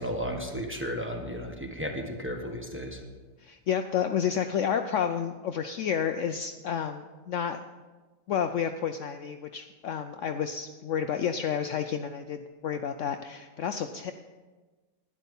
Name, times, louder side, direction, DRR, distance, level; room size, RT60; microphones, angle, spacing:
voice 1, 0.0-3.0, equal, 10° right, 1 dB, 1.2 m, -34 dB
voice 2, 3.4-7.6 8.3-14.1, left 8 dB, 80° left, 7 dB, 0.6 m, -30 dB
12.0 x 10.0 x 5.4 m, 1.3 s
omnidirectional pair, 1.9 m